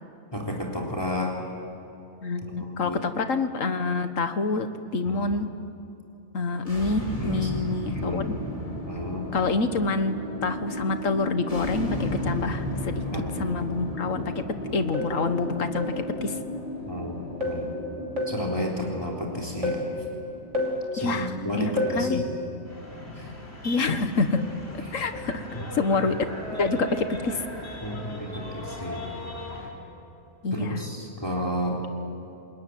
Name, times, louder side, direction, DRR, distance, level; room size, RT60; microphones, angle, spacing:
voice 1, 0.3-1.4 2.6-3.0 5.1-5.4 7.2-7.5 7.9-8.3 8.8-9.3 13.1-13.4 16.9-17.2 17.5-17.7 18.3-19.8 20.9-22.3 23.2-23.3 27.8-29.0 30.5-31.8, left 1 dB, 20° left, -2 dB, 3.7 m, -32 dB
voice 2, 2.2-4.7 4.9-5.5 6.3-8.2 9.3-10.1 10.4-13.0 13.4-14.4 14.7-15.9 16.2-16.4 21.0-22.2 23.6-24.4 24.9-25.5 25.7-26.2 26.6-27.4 30.4-30.8, left 3 dB, 90° left, 9 dB, 1.8 m, -27 dB
sound 1, 6.6-21.5, left 1 dB, 35° left, 3.9 m, -35 dB
sound 2, 14.9-15.2 15.7-16.1 17.4-17.7 18.2-18.5 19.6-19.9 20.5-20.9 21.8-22.1 24.3-24.6 25.1-25.3, left 2 dB, 70° right, 3.7 m, -29 dB
sound 3, 22.7-29.7, equal, 55° left, 4.9 m, -38 dB
28.5 x 21.0 x 9.5 m, 2.8 s
omnidirectional pair, 1.3 m